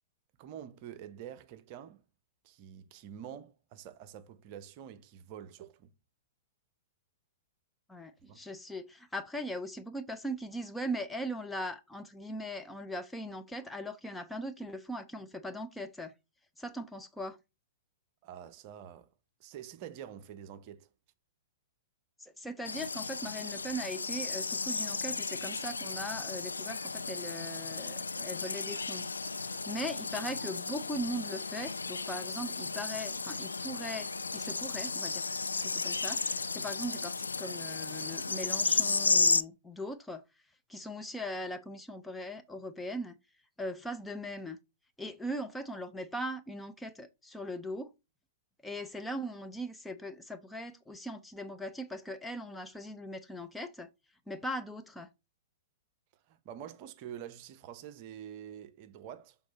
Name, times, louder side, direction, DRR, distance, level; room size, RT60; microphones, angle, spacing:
voice 1, 0.4-2.0 2.4-5.9 8.3-8.4 18.2-19.1 19.4-20.9 56.3-59.4, right 9 dB, 40° right, 0.7 m, -47 dB
voice 2, 7.9-16.1 16.6-17.4 22.2-29.1 29.7-35.2 35.6-40.2 40.7-43.2 43.6-44.6 45.0-47.9 48.6-53.9 54.3-55.1, equal, 5° left, 0.5 m, -40 dB
sound 1, 22.6-39.4, left 4 dB, 80° left, 0.3 m, -34 dB
6.2 x 3.8 x 4.1 m
figure-of-eight pair, 105°, 0 cm